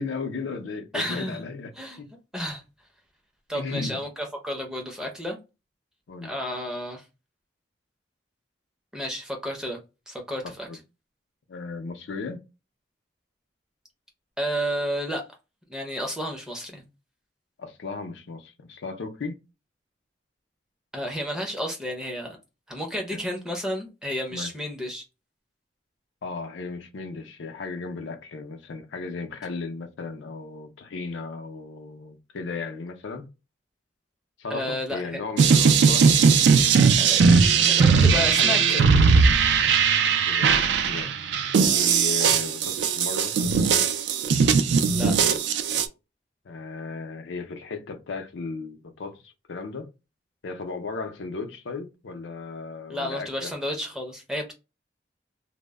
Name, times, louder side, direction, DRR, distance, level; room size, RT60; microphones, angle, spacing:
voice 1, 0.0-1.7 2.0-2.1 3.5-4.0 6.1-6.3 10.7-10.8 11.5-12.4 17.6-19.4 23.1-23.2 24.3-24.5 26.2-33.3 34.4-36.2 37.3-38.8 40.3-41.1 41.7-43.6 46.4-49.9 50.4-53.5, left 4 dB, 80° left, 0.5 m, -35 dB
voice 2, 0.9-1.4 1.8-2.0 2.3-2.6 3.5-5.4 6.2-7.0 8.9-9.8 10.1-10.7 14.4-15.2 15.7-16.8 20.9-22.4 22.7-25.0 34.5-35.0 37.0-37.2 37.7-38.9 44.9-45.1 52.9-54.5, equal, 5° right, 0.5 m, -31 dB
sound 1, 35.4-45.9, right 5 dB, 70° right, 0.3 m, -19 dB
2.0 x 2.0 x 3.3 m
head